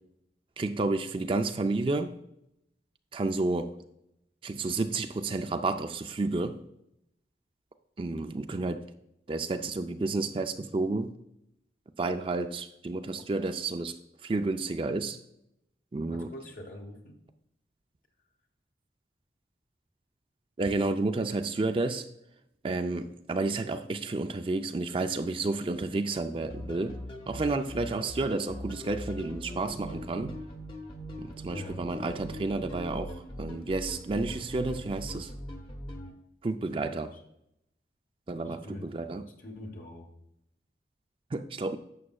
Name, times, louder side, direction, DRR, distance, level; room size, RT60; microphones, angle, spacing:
voice 1, 0.6-2.1 3.1-3.7 4.4-6.6 8.0-8.9 9.3-11.2 12.0-14.0 14.2-15.2 15.9-16.3 20.6-22.1 22.6-27.0 27.3-30.4 31.2-35.3 36.4-37.1 38.3-39.3 41.3-41.8, right 3 dB, 30° right, 0.4 m, -31 dB
voice 2, 16.1-17.2 31.5-31.9 36.7-37.2 38.4-38.9 39.4-40.1, left 1 dB, 50° left, 1.2 m, -44 dB
sound 1, 26.5-36.1, equal, 30° left, 1.0 m, -41 dB
11.0 x 7.2 x 2.3 m
head